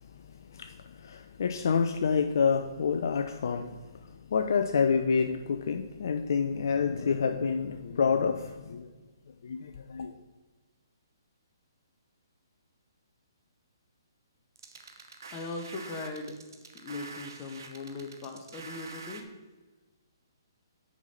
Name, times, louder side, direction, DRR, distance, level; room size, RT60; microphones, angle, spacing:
voice 1, 1.0-3.8 4.3-8.9 9.4-10.1, left 6 dB, 60° left, 6 dB, 0.5 m, -28 dB
sound 1, 14.6-19.2, right 3 dB, 60° right, 0.9 m, -46 dB
voice 2, 15.3-16.4 16.7-19.3, left 3 dB, 25° left, 4 dB, 1.2 m, -39 dB
6.2 x 5.3 x 5.6 m, 1.3 s
figure-of-eight pair, 130°, 2 cm